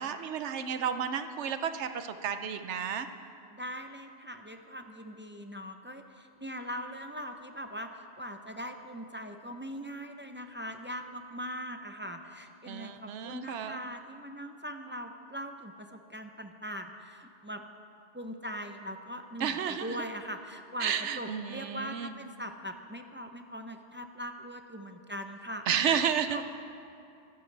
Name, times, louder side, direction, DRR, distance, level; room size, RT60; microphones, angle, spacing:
voice 1, 0.0-3.1 12.7-13.8 19.4-19.9 20.8-22.1 25.7-26.4, right 8 dB, 80° right, 9 dB, 1.0 m, -32 dB
voice 2, 3.5-17.6 18.1-26.0 26.3-26.4, equal, 15° right, 5 dB, 0.4 m, -41 dB
24.0 x 11.5 x 3.3 m, 2.7 s
omnidirectional pair, 1.2 m